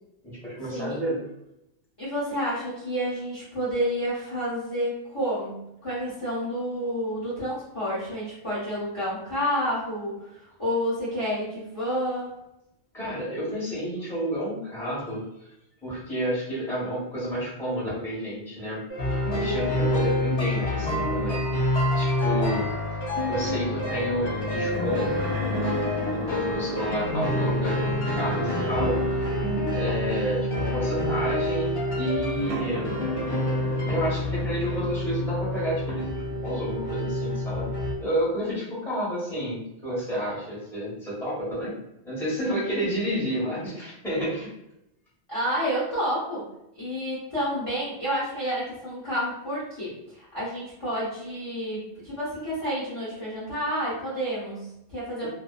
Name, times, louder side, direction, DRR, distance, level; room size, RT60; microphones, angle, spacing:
voice 1, 0.2-1.2 12.9-15.5 15.8-18.8 19.1-21.4 21.9-22.6 23.2-29.2 29.7-33.0 33.9-37.7 38.0-41.7 42.0-44.5 55.2-55.3, equal, ahead, -9 dB, 1.0 m, -30 dB
voice 2, 2.0-12.3 45.3-46.5 46.8-55.3, equal, 30° left, -10 dB, 1.0 m, -29 dB
sound 1, 18.9-34.2, left 2 dB, 60° left, 1.2 m, -34 dB
sound 2, 19.0-37.9, left 1 dB, 80° left, 0.9 m, -28 dB
sound 3, 24.7-29.4 30.1-30.2 32.3-34.9, right 1 dB, 60° right, 0.3 m, -36 dB
2.6 x 2.2 x 2.3 m, 0.85 s
omnidirectional pair, 1.1 m